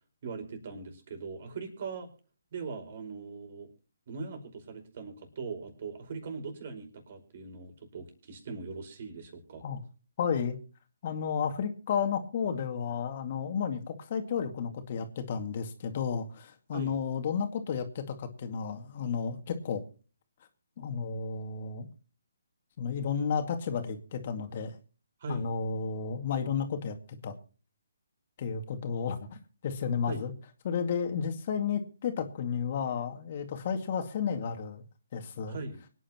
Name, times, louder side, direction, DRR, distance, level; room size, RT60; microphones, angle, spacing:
voice 1, 0.2-2.1 2.5-3.7 4.1-9.6 16.7-17.0 25.2-25.5 30.0-30.3 35.5-35.8, right 4 dB, 50° right, 6 dB, 5.0 m, -40 dB
voice 2, 10.2-10.6 11.0-19.8 20.8-21.9 22.8-24.7 25.3-27.0 27.2-27.3 28.4-30.3 30.6-34.8 35.1-35.6, left 6 dB, 45° left, 6 dB, 2.2 m, -32 dB
25.0 x 9.9 x 3.0 m, 0.37 s
figure-of-eight pair, 145°, 0 cm